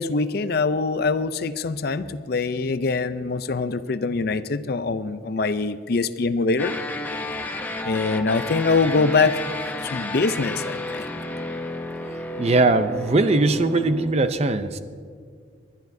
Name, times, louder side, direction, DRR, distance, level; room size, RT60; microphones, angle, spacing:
voice 1, 0.0-6.7 7.8-9.4 9.8-11.1, left 4 dB, 50° left, 12 dB, 0.5 m, -23 dB
sound 1, 6.6-14.1, left 2 dB, 10° left, 0.7 m, -32 dB
voice 2, 12.4-14.8, right 2 dB, 35° right, 10 dB, 0.5 m, -20 dB
26.0 x 11.5 x 2.7 m, 2.1 s
head